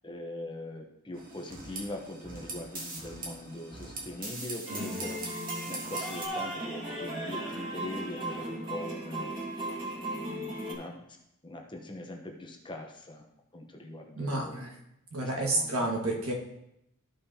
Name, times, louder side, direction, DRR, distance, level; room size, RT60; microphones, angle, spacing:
voice 1, 0.0-5.3 5.7-9.7 10.0-11.1 11.4-13.2 13.5-14.6 15.2-15.9, left 1 dB, 20° left, 2 dB, 0.9 m, -42 dB
sound 1, 1.1-6.3, right 2 dB, 40° right, 1.5 m, -41 dB
sound 2, 4.7-10.7, right 1 dB, 20° right, 1.9 m, -36 dB
voice 2, 4.7-5.1 14.2-14.7 15.1-16.3, right 2 dB, 75° right, 0 dB, 1.7 m, -31 dB
13.5 x 5.3 x 2.8 m, 0.79 s
head